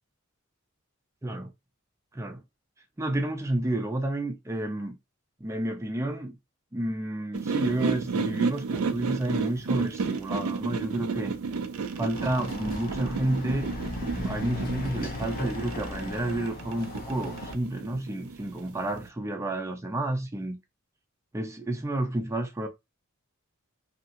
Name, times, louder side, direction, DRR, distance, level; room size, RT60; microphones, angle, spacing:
voice 1, 3.0-5.0 5.4-6.4 6.7-11.3 12.0-20.6 21.3-22.7, right 1 dB, 15° right, 0.4 m, -30 dB
sound 1, 7.3-19.1, right 5 dB, 90° right, 0.5 m, -32 dB
Chatter / Car passing by / Motorcycle, 12.1-17.5, left 2 dB, 45° left, 0.8 m, -37 dB
2.8 x 2.8 x 2.5 m
head